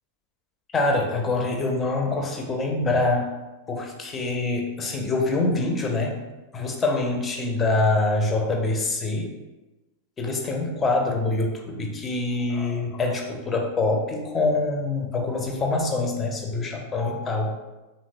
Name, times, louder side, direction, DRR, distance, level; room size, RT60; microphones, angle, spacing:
voice 1, 0.7-3.3 3.7-6.2 6.5-9.3 10.2-17.5, left 2 dB, 20° left, 2 dB, 0.4 m, -25 dB
2.8 x 2.0 x 2.5 m, 1.1 s
figure-of-eight pair, 90°, 0 cm